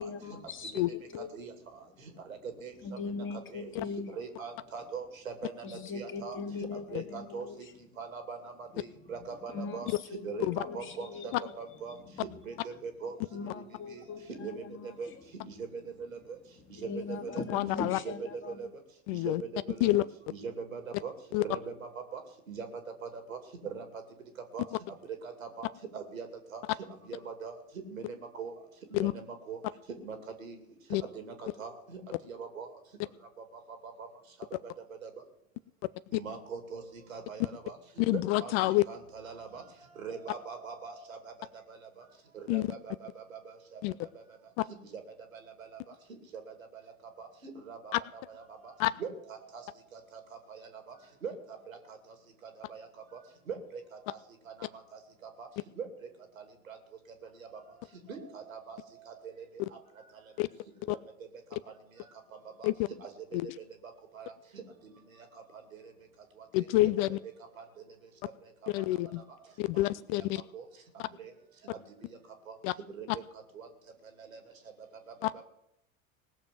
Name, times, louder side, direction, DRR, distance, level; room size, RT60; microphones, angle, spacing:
voice 1, 0.0-1.3 2.8-4.1 5.6-7.7 8.8-12.2 13.3-15.2 16.6-18.7, left 4 dB, 30° left, 5 dB, 2.2 m, -41 dB
voice 2, 2.3-2.7 3.5-3.7 4.2-5.5 5.9-6.4 6.9-7.5 8.0-9.9 10.2-12.0 12.4-13.2 13.9-14.0 14.4-14.6 15.0-15.1 15.4-15.8 16.1-16.2 16.8-17.4 18.0-18.1 18.5-18.7 19.1-19.9 20.3-21.1 21.4-21.7 22.1-22.2 22.5-22.7 23.0-23.4 23.6-23.8 24.5-24.6 25.2-25.7 25.9-26.3 26.5-26.6 27.1-27.5 27.9-28.5 28.9-29.6 30.0-30.6 31.1-32.7 35.0-35.1 36.1-36.8 37.1-37.8 38.1-38.5 38.9-39.6 40.0-41.3 41.7-41.8 42.5-43.4 43.7-43.8 47.2-47.3 47.7-47.9 48.3-48.7 49.0-50.0 50.5-50.7 51.2-51.3 51.7-51.8 52.7-52.9 53.5-53.8 54.1-54.2 55.4-55.5 55.8-55.9 56.7-56.8 58.1-58.8 59.1-59.2 60.9-61.0 62.6-62.7 63.0-63.1 64.1-64.6 67.1-67.2 69.7-69.8 70.5-70.6 71.2-71.3 72.0-72.2 72.5-72.6 72.9-73.1 73.6-73.7, right 5 dB, 75° right, 6 dB, 2.7 m, -41 dB
voice 3, 17.5-18.0 19.1-19.4 19.8-20.0 21.3-21.4 28.9-29.1 30.9-31.0 36.1-36.2 38.0-38.8 42.5-42.7 43.8-43.9 44.6-44.7 47.9-48.0 48.8-48.9 59.6-59.7 60.4-60.5 60.9-61.0 62.6-62.9 63.3-63.4 66.5-67.2 68.7-69.2 69.6-70.4 71.0-71.1 72.6-72.7 73.1-73.2 75.2-75.3, left 18 dB, 45° left, 16 dB, 0.6 m, -27 dB
19.0 x 7.0 x 7.5 m, 0.80 s
figure-of-eight pair, 75°, 41 cm